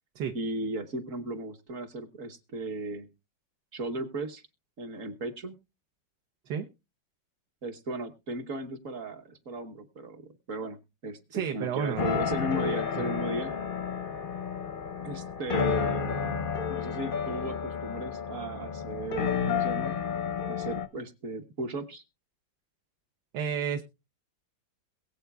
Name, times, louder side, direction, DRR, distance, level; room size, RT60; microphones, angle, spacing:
voice 1, 0.3-3.1 3.7-4.4 4.8-5.6 7.6-10.2 10.5-13.5 15.0-16.1 16.7-19.9 20.5-22.0, right 2 dB, 50° right, 6 dB, 1.3 m, -36 dB
voice 2, 11.3-12.3 13.0-13.2 23.3-23.8, right 7 dB, 70° right, 4 dB, 1.4 m, -32 dB
sound 1, 12.0-20.9, left 6 dB, 50° left, 0.6 m, -31 dB
22.0 x 7.9 x 2.3 m, 0.26 s
omnidirectional pair, 2.0 m